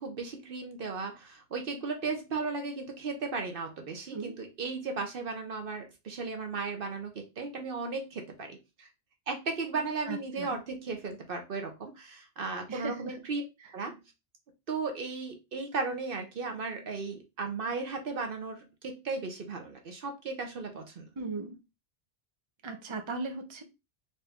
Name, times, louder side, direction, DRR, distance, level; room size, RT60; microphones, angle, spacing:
voice 1, 0.0-8.9 9.3-13.4 13.7-14.0 14.7-21.1, right 4 dB, 60° right, 1.0 m, -36 dB
voice 2, 10.1-10.6 12.7-13.1 21.2-21.6 22.6-23.6, right 3 dB, 30° right, 0.7 m, -37 dB
4.1 x 2.6 x 3.4 m
omnidirectional pair, 1.1 m